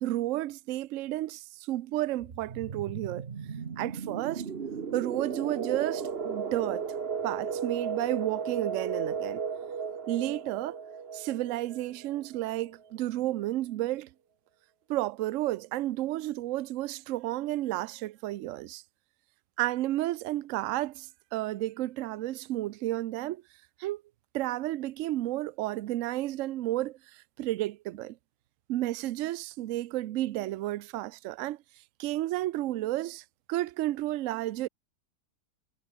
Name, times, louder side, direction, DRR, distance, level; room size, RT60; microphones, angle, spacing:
voice 1, 0.0-3.3 3.8-4.5 4.9-6.9 7.2-9.4 10.1-10.8 11.1-14.1 14.9-18.8 19.6-23.4 23.8-24.0 24.3-28.2 28.7-31.6 32.0-34.7, right 15 dB, 65° right, 0.8 m, -32 dB
sound 1, 2.2-12.7, right 6 dB, 40° right, 1.4 m, -35 dB
omnidirectional pair, 1.7 m